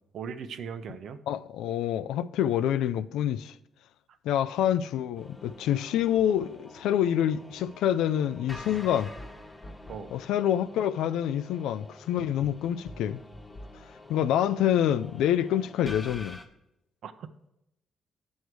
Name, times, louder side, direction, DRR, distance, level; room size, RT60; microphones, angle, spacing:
voice 1, 0.1-1.2 9.9-10.2 17.0-17.5, right 6 dB, 65° right, 0.7 m, -39 dB
voice 2, 1.3-3.5 4.2-9.1 10.1-13.2 14.1-16.4, left 10 dB, 85° left, 0.3 m, -27 dB
sound 1, 5.1-16.5, left 1 dB, 25° left, 1.1 m, -46 dB
8.2 x 6.4 x 4.6 m
cardioid pair, 90°, 0 cm